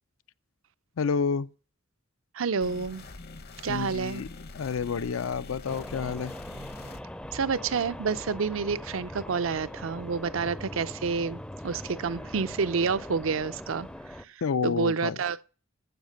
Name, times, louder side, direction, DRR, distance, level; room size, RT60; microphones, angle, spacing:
voice 1, 1.0-1.5 3.7-4.3 4.5-6.3 14.4-15.2, left 5 dB, 80° left, 0.5 m, -29 dB
voice 2, 2.3-3.0 3.6-4.2 7.3-13.9 14.2-15.4, right 5 dB, 75° right, 0.5 m, -29 dB
sound 1, 2.6-7.0, left 3 dB, 50° left, 0.8 m, -45 dB
sound 2, 5.7-14.2, left 1 dB, 5° left, 0.4 m, -41 dB
15.0 x 5.8 x 6.4 m
head